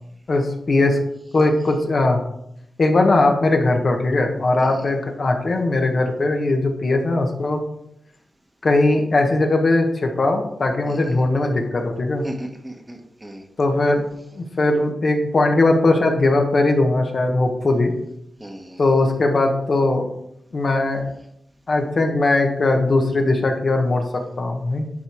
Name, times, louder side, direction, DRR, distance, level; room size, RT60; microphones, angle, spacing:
voice 1, 0.3-1.0 1.3-2.2 2.8-7.6 8.6-12.3 13.6-14.0 14.3-17.9 18.8-20.1 20.5-21.0 21.7-24.0 24.4-24.8, left 2 dB, 50° left, 2 dB, 1.3 m, -19 dB
voice 2, 10.9-11.2 12.2-13.4 18.4-18.8, right 1 dB, 15° right, 3 dB, 1.3 m, -36 dB
10.5 x 4.4 x 4.7 m, 0.78 s
cardioid pair, 90°, 0 cm